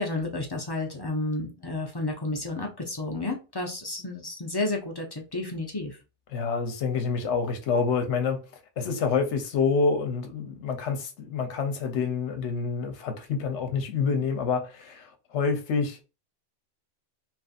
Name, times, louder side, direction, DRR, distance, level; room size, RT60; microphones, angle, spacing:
voice 1, 0.0-6.0, left 2 dB, 40° left, 0.3 m, -31 dB
voice 2, 6.3-8.4 8.8-16.0, left 5 dB, 75° left, 1.0 m, -27 dB
3.0 x 2.6 x 2.4 m
omnidirectional pair, 1.2 m